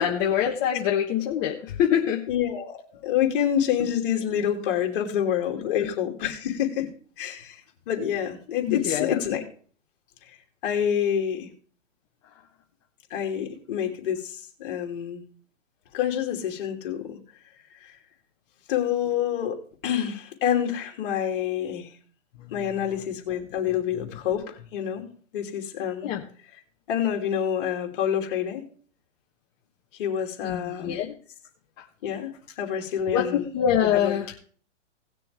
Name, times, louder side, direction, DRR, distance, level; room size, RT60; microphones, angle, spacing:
voice 1, 0.0-2.2 5.6-5.9 8.7-9.2 26.0-26.2 30.4-31.1 33.1-34.4, left 9 dB, 25° left, -1 dB, 1.2 m, -25 dB
voice 2, 2.3-6.9 7.2-7.6 7.9-9.4 10.3-10.4 10.6-11.5 13.1-15.2 15.9-17.2 17.8-18.0 18.7-19.6 19.8-21.9 22.5-25.1 25.3-26.1 26.9-28.6 29.9-31.0 32.0-32.3 32.6-33.5 33.9-34.2, left 9 dB, 45° left, 2 dB, 2.9 m, -27 dB
18.5 x 6.8 x 3.5 m, 0.44 s
hypercardioid pair, 155°, 38 cm